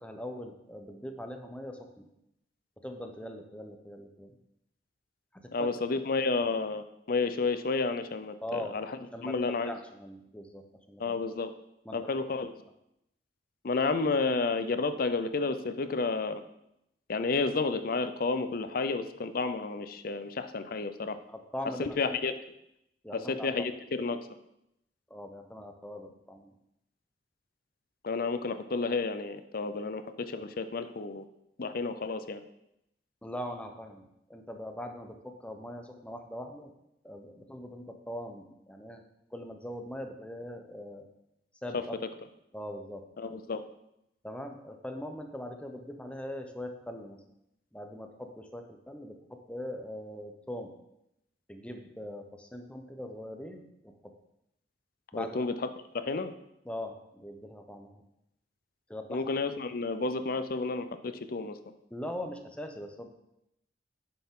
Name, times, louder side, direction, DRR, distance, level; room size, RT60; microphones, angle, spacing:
voice 1, 0.0-2.1 2.8-4.4 5.3-5.7 8.4-8.7 9.1-9.3 9.7-11.0 11.8-12.3 21.3-22.2 23.0-23.5 25.1-26.5 33.2-36.7 37.0-39.0 39.3-41.1 41.6-42.0 42.5-43.0 44.2-47.2 47.7-50.7 51.5-54.1 55.1-55.4 56.6-58.0 58.9-59.2 61.9-63.1, left 1 dB, 5° left, 5 dB, 0.8 m, -41 dB
voice 2, 5.5-9.7 11.0-11.5 11.9-12.5 13.6-16.4 17.1-21.2 21.8-22.3 23.1-24.2 28.0-31.2 31.6-32.4 41.7-41.8 43.2-43.6 55.1-55.5 55.9-56.3 59.1-61.6, left 3 dB, 55° left, 10 dB, 0.6 m, -31 dB
9.3 x 6.8 x 3.8 m, 0.82 s
head